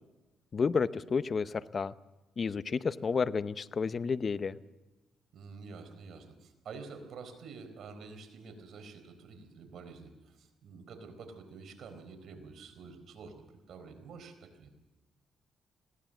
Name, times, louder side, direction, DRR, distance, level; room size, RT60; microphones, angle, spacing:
voice 1, 0.5-1.9 2.4-4.6, left 5 dB, 40° left, 15 dB, 0.8 m, -31 dB
voice 2, 5.3-14.7, right 4 dB, 65° right, 6 dB, 4.2 m, -48 dB
21.0 x 17.0 x 7.5 m, 1.1 s
cardioid pair, 90°, 0 cm